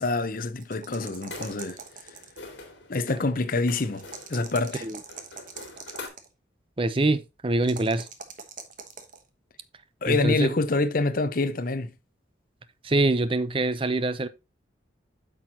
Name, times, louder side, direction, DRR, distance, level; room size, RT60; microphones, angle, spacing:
voice 1, 0.0-1.8 2.9-4.0 4.3-4.9 10.0-11.9, left 3 dB, 50° left, 0.7 m, -26 dB
sound 1, 0.6-2.5 3.9-6.3 7.6-9.2, right 6 dB, 45° right, 1.1 m, -42 dB
sound 2, 1.1-6.1, left 3 dB, 75° left, 2.5 m, -45 dB
voice 2, 6.8-8.1 10.1-10.5 12.8-14.3, right 2 dB, 30° right, 0.6 m, -24 dB
8.8 x 6.2 x 2.8 m
head